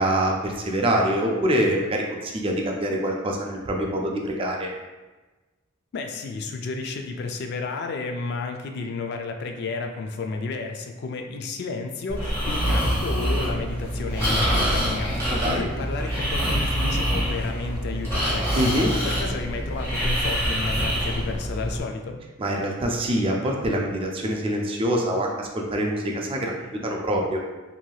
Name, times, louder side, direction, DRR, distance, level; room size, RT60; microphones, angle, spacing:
voice 1, 0.0-4.7 15.3-15.7 18.5-18.9 22.4-27.4, right 1 dB, 25° right, 0 dB, 0.4 m, -25 dB
voice 2, 5.9-22.2, left 3 dB, 55° left, 4 dB, 0.3 m, -32 dB
Breathing, 12.1-21.8, equal, 15° left, 1.0 m, -25 dB
3.1 x 2.7 x 2.3 m, 1.2 s
head